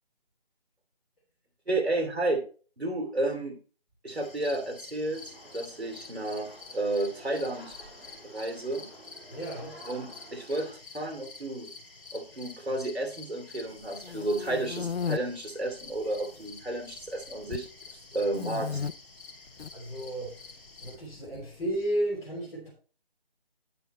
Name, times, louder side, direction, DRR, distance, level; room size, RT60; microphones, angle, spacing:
voice 1, 1.7-2.4 2.8-3.6 4.0-5.2 5.5-7.7 8.2-8.9 9.9-10.7 10.9-11.7 12.1-17.7 18.1-18.8, right 2 dB, 85° right, 4 dB, 2.8 m, -31 dB
sound 1, 4.1-21.0, left 4 dB, 60° left, 2.6 m, -49 dB
sound 2, 5.1-10.7, right 1 dB, 15° right, 4.6 m, -51 dB
voice 2, 9.3-9.8 18.1-18.2 19.7-22.7, right 1 dB, 5° left, -12 dB, 1.6 m, -34 dB
sound 3, 13.8-15.2 15.8-16.5 16.7-17.7 18.3-18.9 19.5-19.7 20.8-21.8, left 6 dB, 80° left, 0.5 m, -35 dB
9.2 x 5.7 x 4.1 m, 0.38 s
figure-of-eight pair, 160°, 31 cm